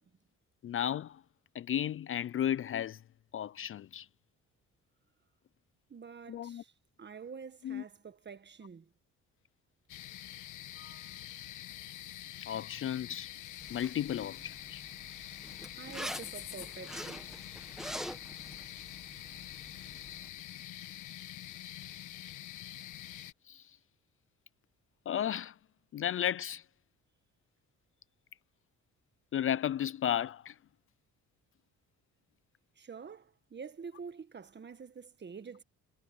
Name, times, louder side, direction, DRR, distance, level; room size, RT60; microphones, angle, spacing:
voice 1, 0.6-1.2 1.5-3.0 3.3-4.1 6.3-6.6 7.6-7.8 10.8-11.0 12.4-13.3 13.7-14.8 23.5-23.7 25.1-25.5 25.9-26.6 29.3-30.6, left 10 dB, 45° left, 0.4 m, -34 dB
voice 2, 5.9-6.7 7.0-8.8 15.7-17.3 32.8-35.6, right 6 dB, 35° right, 1.6 m, -47 dB
sound 1, 9.9-23.3, left 13 dB, 80° left, 1.4 m, -46 dB
Zipper (clothing), 13.6-20.3, equal, ahead, 1.4 m, -46 dB
cardioid pair, 90°, 30 cm